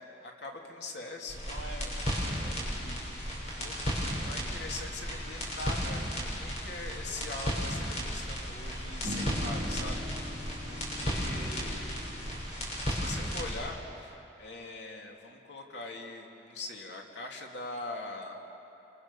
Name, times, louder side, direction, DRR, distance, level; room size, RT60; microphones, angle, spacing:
voice 1, 0.0-3.8 4.2-10.0 10.7-12.0 12.9-18.4, left 2 dB, 70° left, 1 dB, 2.8 m, -42 dB
sound 1, 1.3-13.5, equal, 35° left, 7.5 m, -34 dB
sound 2, 7.4-8.3 9.0-12.4, equal, 50° right, 3.0 m, -42 dB
30.0 x 27.0 x 6.9 m, 2.9 s
head